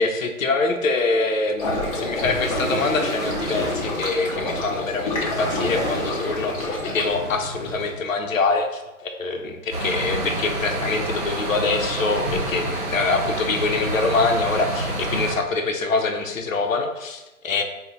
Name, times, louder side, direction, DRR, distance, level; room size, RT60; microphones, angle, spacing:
voice 1, 0.0-17.6, left 3 dB, 65° left, 5 dB, 0.7 m, -24 dB
sound 1, 1.6-7.1, left 2 dB, 25° left, 0.8 m, -29 dB
Waves surf, 1.6-7.9, equal, 5° right, 1.2 m, -31 dB
sound 2, 9.7-15.4, right 1 dB, 35° right, 1.0 m, -27 dB
3.9 x 2.2 x 3.9 m, 1.0 s
figure-of-eight pair, 145°, 44 cm